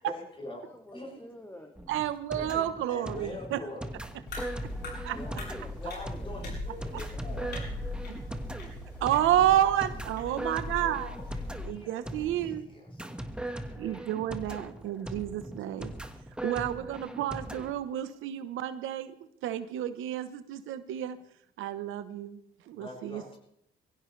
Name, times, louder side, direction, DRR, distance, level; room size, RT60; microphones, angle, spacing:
voice 1, 0.0-0.6 0.9-1.3 2.4-2.6 2.9-3.9 5.1-5.3 5.8-7.6 9.5-9.7 11.0-11.2 11.7-12.3 12.6-12.9 13.8-14.0 15.4-15.5 22.7-23.4, left 1 dB, 25° left, -1 dB, 7.5 m, -43 dB
voice 2, 0.7-1.7 4.3-6.4 6.8-7.6, left 1 dB, 10° left, 1 dB, 2.2 m, -50 dB
sound 1, 1.7-17.7, right 1 dB, 5° right, 1.6 m, -40 dB
voice 3, 1.9-3.6 5.0-5.1 9.0-11.1 11.6-12.6 13.8-15.9 16.4-19.1 19.4-21.2 21.6-22.4 22.7-23.4, right 11 dB, 90° right, 11 dB, 1.1 m, -30 dB
sound 2, 4.3-11.6, left 2 dB, 55° left, 7.4 m, -39 dB
23.0 x 16.0 x 3.3 m, 0.72 s
cardioid pair, 90°, 20 cm